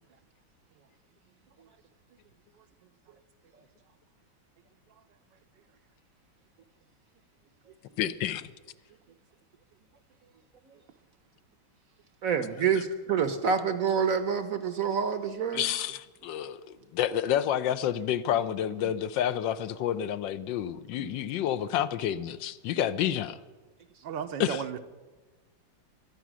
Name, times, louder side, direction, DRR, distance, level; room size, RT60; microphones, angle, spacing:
voice 1, 8.0-8.5 15.5-16.6 16.9-23.4 24.4-24.6, left 10 dB, 75° left, 1.3 m, -29 dB
voice 2, 12.2-15.7 18.8-18.9 21.0-21.1, right 6 dB, 55° right, 1.0 m, -27 dB
voice 3, 24.0-24.8, right 8 dB, 75° right, 1.4 m, -34 dB
22.5 x 8.2 x 6.2 m
omnidirectional pair, 2.1 m